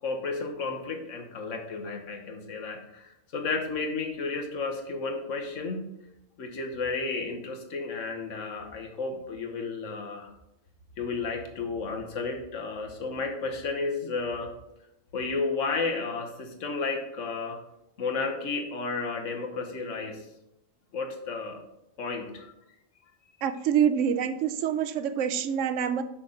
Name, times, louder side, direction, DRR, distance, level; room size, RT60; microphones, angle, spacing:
voice 1, 0.0-5.8 6.4-10.3 11.0-14.5 15.1-17.6 18.0-20.3 20.9-21.6 22.0-22.5, left 4 dB, 75° left, 3 dB, 1.4 m, -32 dB
voice 2, 23.4-26.0, right 8 dB, 75° right, 11 dB, 0.9 m, -26 dB
6.1 x 6.1 x 3.9 m, 0.86 s
omnidirectional pair, 1.3 m